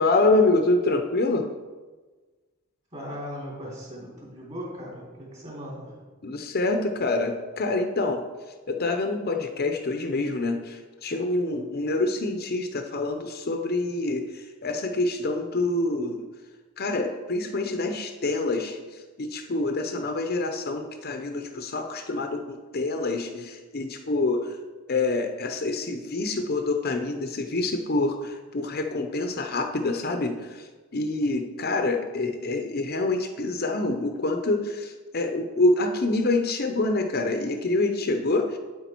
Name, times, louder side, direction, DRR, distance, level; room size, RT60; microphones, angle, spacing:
voice 1, 0.0-1.5 6.2-8.2 8.7-16.3 16.8-24.6 24.9-38.6, left 2 dB, 50° left, 6 dB, 0.7 m, -26 dB
voice 2, 2.9-6.0, equal, 35° right, -3 dB, 3.4 m, -38 dB
8.7 x 8.3 x 4.5 m, 1.3 s
head